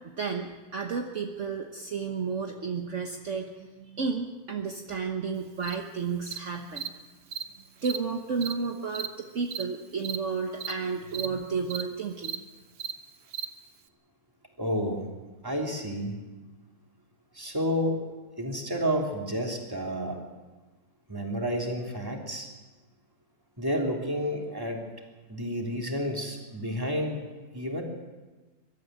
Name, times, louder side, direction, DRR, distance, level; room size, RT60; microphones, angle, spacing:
voice 1, 0.2-6.9 7.8-12.4, right 5 dB, 55° right, 3 dB, 1.5 m, -32 dB
Cricket, 5.6-5.8 6.3-6.4 6.8-6.9 7.3-7.4 7.8-8.0 8.4-8.5 8.9-9.1 9.5-9.6 10.0-10.2 10.6-10.7 11.1-11.3 11.7-11.8 12.2-12.4 12.8-12.9 13.3-13.5, right 8 dB, 90° right, 1.6 m, -34 dB
voice 2, 14.6-15.1 15.4-16.1 17.3-18.0 18.4-20.2 21.1-22.5 23.6-24.8 25.3-27.2 27.5-27.8, equal, 15° right, 0 dB, 3.3 m, -30 dB
23.0 x 13.0 x 9.3 m, 1.2 s
omnidirectional pair, 1.6 m